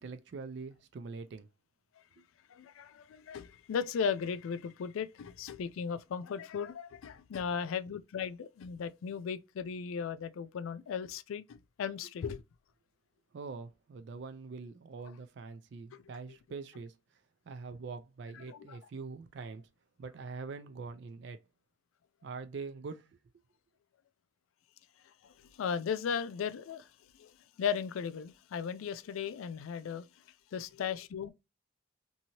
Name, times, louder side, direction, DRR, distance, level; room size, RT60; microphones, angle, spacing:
voice 1, 0.0-1.5 13.3-17.0 17.5-19.7 20.0-21.4 22.2-23.2, right 4 dB, 60° right, 0.3 m, -44 dB
voice 2, 2.5-12.4 15.9-16.0 18.5-18.8 25.2-26.9 27.2-30.1 30.5-31.3, left 7 dB, 85° left, 0.3 m, -36 dB
2.7 x 2.7 x 2.8 m
head